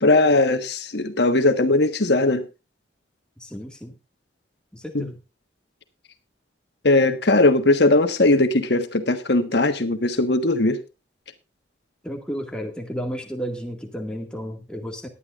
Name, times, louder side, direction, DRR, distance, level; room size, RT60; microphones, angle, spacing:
voice 1, 0.0-2.5 4.9-5.1 6.8-10.8, left 2 dB, 65° left, 1.3 m, -19 dB
voice 2, 3.4-3.9 4.7-5.2 12.0-15.1, equal, 5° left, 1.9 m, -32 dB
18.5 x 11.0 x 2.5 m
head